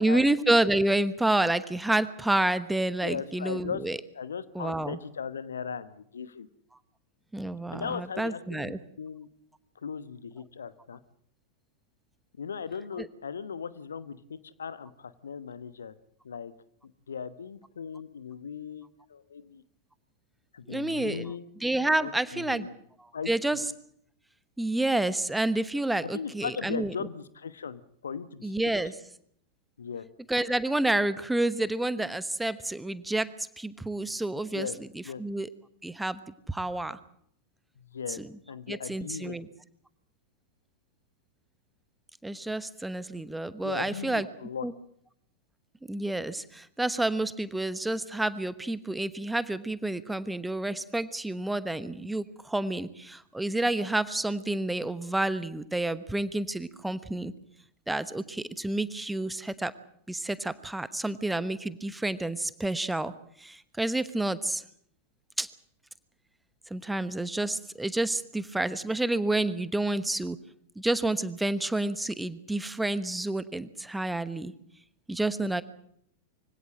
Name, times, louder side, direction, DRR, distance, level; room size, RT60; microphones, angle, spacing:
voice 1, 0.0-4.0 4.5-5.0 7.3-8.8 13.0-13.1 20.7-21.2 21.6-22.7 23.3-23.6 24.6-26.9 28.4-28.9 30.3-34.7 34.9-35.5 35.8-36.2 36.5-37.0 38.2-38.3 38.7-39.5 42.2-44.3 44.6-44.7 45.9-57.3 57.9-59.7 60.1-63.1 63.4-64.6 65.4-65.5 66.7-70.4 70.8-74.5 75.1-75.6, right 2 dB, 5° right, 15 dB, 1.1 m, -29 dB
voice 2, 3.0-3.8 4.1-6.5 7.7-9.3 9.7-11.0 12.4-15.9 16.2-16.5 16.8-19.6 20.5-21.5 22.0-22.7 23.1-23.6 26.0-28.5 29.8-30.1 34.5-34.8 35.0-35.2 37.8-38.2 38.5-39.4 43.6-44.6, left 6 dB, 70° left, 15 dB, 1.0 m, -38 dB
24.0 x 16.5 x 7.6 m, 0.69 s
figure-of-eight pair, 90°, 0 cm